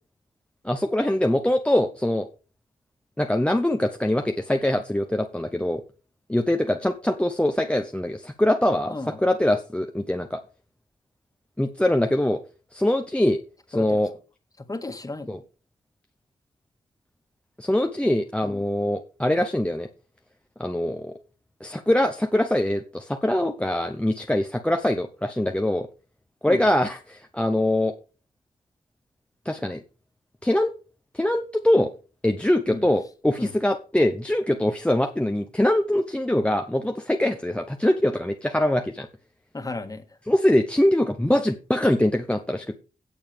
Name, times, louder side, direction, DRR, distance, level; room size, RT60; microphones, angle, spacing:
voice 1, 0.6-2.3 3.2-5.8 6.3-10.4 11.6-12.4 12.7-13.4 13.7-14.1 15.3-15.4 17.6-19.9 20.6-21.1 21.6-25.9 26.4-27.9 29.4-29.8 30.4-30.7 31.1-31.9 32.2-39.1 40.3-42.8, left 1 dB, 5° left, 0.8 m, -23 dB
voice 2, 8.9-9.2 13.7-14.0 14.6-15.3 18.4-18.6 26.5-26.6 32.7-32.8 33.4-33.5 39.5-40.0, left 2 dB, 25° left, 1.8 m, -33 dB
17.0 x 7.1 x 3.4 m
wide cardioid pair, 130°, 16 cm